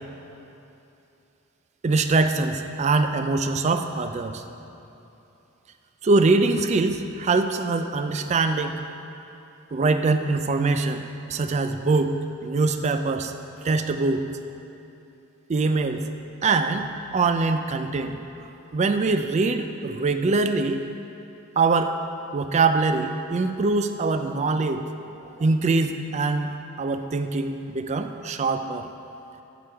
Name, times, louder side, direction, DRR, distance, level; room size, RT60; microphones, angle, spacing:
voice 1, 1.8-4.4 6.0-8.7 9.7-11.0 11.3-12.1 12.4-13.3 13.6-14.2 15.5-16.0 16.4-16.9 17.1-18.2 18.7-20.8 21.6-21.9 22.3-24.8 25.4-26.5 26.8-28.9, right 3 dB, 30° right, 8 dB, 0.3 m, -23 dB
8.3 x 6.9 x 4.4 m, 2.9 s
head